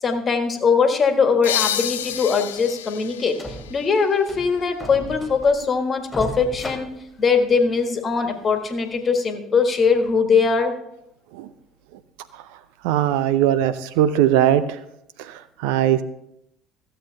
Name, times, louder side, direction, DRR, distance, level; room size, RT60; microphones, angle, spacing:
voice 1, 0.0-3.4 3.7-6.9 7.2-10.7, left 5 dB, 35° left, 6 dB, 1.6 m, -21 dB
sound 1, 1.4-4.9, left 11 dB, 75° left, 0.4 m, -29 dB
sound 2, 2.1-2.2 2.5-2.6 2.9-3.0 3.4-3.9 4.3-5.7 6.1-7.7 8.2-8.3 8.9-9.0, equal, 10° left, 2.4 m, -36 dB
voice 2, 12.8-14.6 15.3-16.0, right 11 dB, 65° right, 14 dB, 0.5 m, -19 dB
15.0 x 7.8 x 3.4 m, 0.80 s
figure-of-eight pair, 60°, 0 cm